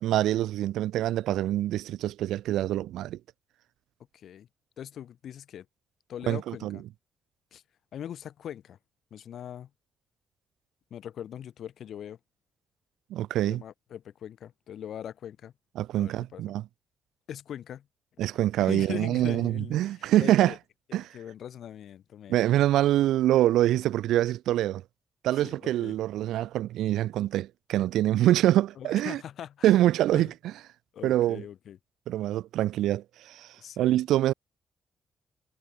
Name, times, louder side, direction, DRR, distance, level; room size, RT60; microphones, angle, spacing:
voice 1, 0.0-3.2 6.3-6.8 13.1-13.6 15.8-16.6 18.2-20.5 20.9-21.1 22.3-24.8 25.2-29.2 29.6-30.5 31.0-31.4 32.1-33.5 33.8-34.3, right 13 dB, 90° right, 0.7 m, -25 dB
voice 2, 4.1-4.5 4.8-5.7 6.1-6.8 7.5-7.6 7.9-8.8 9.1-9.7 10.9-12.2 13.4-15.5 15.9-16.5 17.3-17.9 18.6-20.6 20.9-22.4 25.3-25.9 28.8-29.8 30.1-30.3 30.9-31.8 33.6-34.0, left 10 dB, 75° left, 2.0 m, -41 dB
cardioid pair, 70°, 0 cm